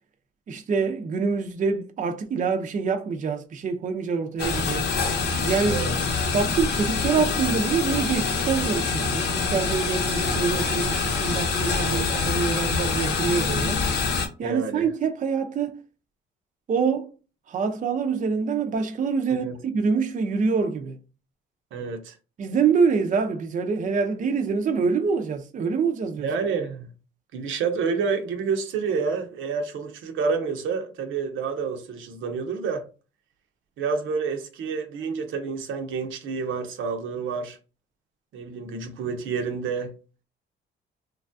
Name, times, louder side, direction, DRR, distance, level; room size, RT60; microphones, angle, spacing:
voice 1, 0.5-4.9 5.4-5.8 6.3-13.8 14.4-15.8 16.7-17.1 17.5-19.5 19.7-21.0 22.4-26.3, right 5 dB, 40° right, 0.5 m, -25 dB
sound 1, 4.4-14.3, left 4 dB, 60° left, 0.8 m, -25 dB
voice 2, 14.4-14.9 19.3-19.6 21.7-22.1 26.2-26.9 27.3-32.8 33.8-37.6 38.3-40.0, right 5 dB, 80° right, 0.6 m, -29 dB
3.1 x 2.3 x 2.5 m
cardioid pair, 90°, 20 cm